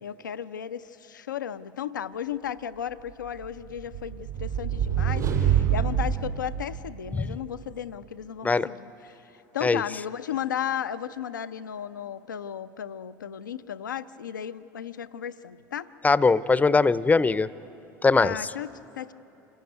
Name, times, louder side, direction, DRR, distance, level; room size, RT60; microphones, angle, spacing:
voice 1, 0.0-15.9 18.2-19.1, left 9 dB, 90° left, 12 dB, 0.5 m, -35 dB
sound 1, 3.4-7.3, right 9 dB, 80° right, 5.8 m, -26 dB
voice 2, 16.0-17.5 18.0-18.3, left 4 dB, 15° left, 17 dB, 0.6 m, -21 dB
27.0 x 16.5 x 9.4 m, 2.9 s
hypercardioid pair, 75°, 10 cm